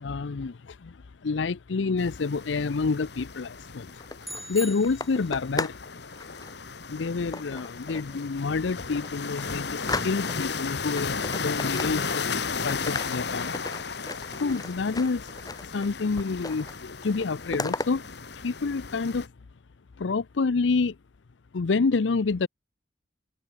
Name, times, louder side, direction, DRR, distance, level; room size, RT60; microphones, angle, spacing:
voice 1, 0.0-4.0 4.5-5.8 6.9-13.6 14.3-19.3 20.0-21.0 21.5-22.5, left 4 dB, 80° left, 0.6 m, -28 dB
sound 1, 2.0-19.3, left 5 dB, 65° left, 1.5 m, -35 dB
sound 2, 3.9-5.9 6.1-6.5 7.3-8.1 8.6-8.7 9.0-10.6 10.9-12.4 12.7-15.9 16.2-16.8 17.0-17.9, left 2 dB, 20° left, 2.8 m, -36 dB
sound 3, 4.2-5.6, equal, ahead, 1.8 m, -41 dB
head